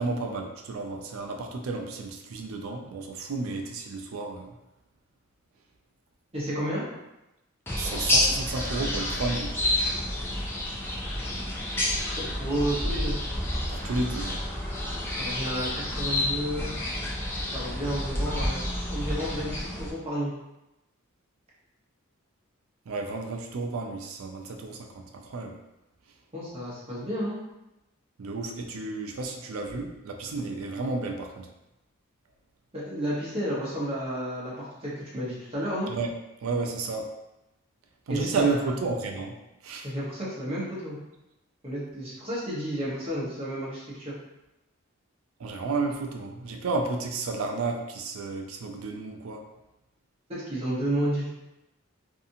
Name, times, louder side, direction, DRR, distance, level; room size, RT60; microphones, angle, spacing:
voice 1, 0.0-4.6 7.8-9.6 13.7-14.4 22.9-25.6 28.2-31.5 35.9-36.1 36.4-37.1 38.1-39.4 39.6-39.9 45.4-49.4, right 3 dB, 80° right, 3 dB, 0.4 m, -32 dB
voice 2, 6.3-6.8 12.2-13.2 15.2-16.7 17.5-18.6 18.9-20.3 26.3-27.4 32.7-35.9 38.1-38.7 39.8-41.0 41.6-44.1 50.3-51.3, right 1 dB, 25° right, -8 dB, 0.9 m, -31 dB
sound 1, 7.7-19.9, left 1 dB, 10° left, 0.3 m, -29 dB
2.7 x 2.4 x 2.6 m, 0.94 s
head